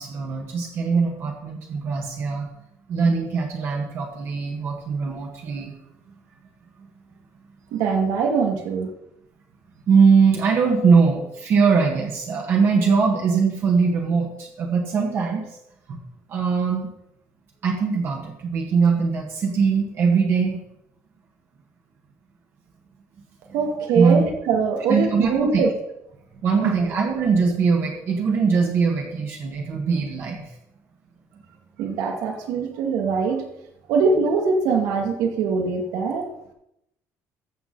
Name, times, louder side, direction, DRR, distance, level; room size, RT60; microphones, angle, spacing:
voice 1, 0.0-2.5 2.9-5.7 9.9-15.4 15.9-16.0 16.3-16.9 17.6-20.6 23.9-24.2 24.9-25.6 26.4-30.5, right 5 dB, 45° right, 0 dB, 1.6 m, -21 dB
voice 2, 7.7-8.9 23.5-25.7 26.6-26.9 31.8-33.5 33.9-36.3, right 5 dB, 90° right, 3 dB, 2.3 m, -22 dB
14.0 x 7.1 x 4.1 m, 0.80 s
cardioid pair, 170°, 6 cm